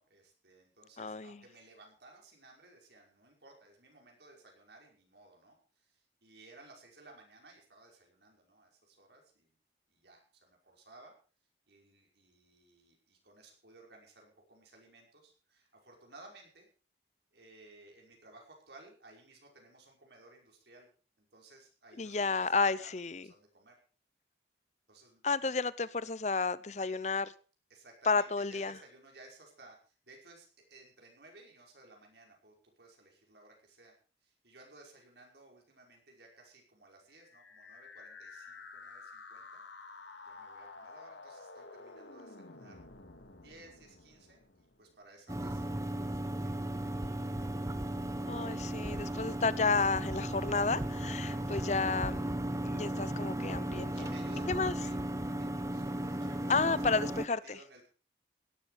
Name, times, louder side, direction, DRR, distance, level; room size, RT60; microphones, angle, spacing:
voice 1, 0.0-9.6 9.9-11.1 11.7-16.7 17.3-20.9 21.2-23.7 24.9-25.5 27.7-33.9 34.2-39.6 40.3-42.8 43.4-47.1 51.0-51.7 53.9-57.9, right 2 dB, 70° right, 0 dB, 5.5 m, -58 dB
voice 2, 1.0-1.4 22.0-23.2 25.2-27.3 28.1-28.7 48.3-52.2 52.6-53.9 54.5-54.7 56.5-57.6, left 4 dB, 40° left, 18 dB, 0.7 m, -31 dB
sound 1, 37.2-45.1, left 3 dB, 90° left, 2.2 m, -51 dB
sound 2, 45.3-57.3, right 1 dB, 15° right, 0.9 m, -36 dB
17.0 x 12.0 x 5.0 m, 0.38 s
head